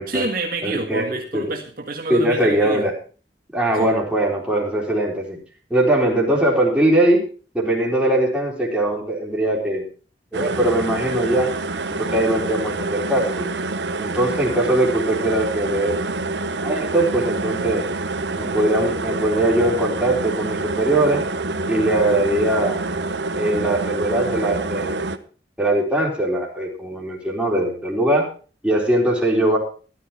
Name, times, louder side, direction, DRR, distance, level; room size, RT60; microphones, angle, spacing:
voice 1, 0.0-2.9 3.7-3.9, right 3 dB, 55° right, 2 dB, 1.8 m, -28 dB
voice 2, 0.6-1.0 1.3-1.4 2.1-2.9 3.5-5.4 5.7-7.2 7.5-9.8 10.3-11.5 11.9-13.5 14.0-16.0 16.6-17.9 18.4-21.2 21.7-22.8 23.3-25.0 25.6-28.2 28.6-29.6, right 1 dB, 5° right, -3 dB, 4.2 m, -20 dB
sound 1, 10.3-25.2, right 3 dB, 85° right, 1.0 m, -27 dB
13.5 x 12.5 x 4.4 m, 0.38 s
head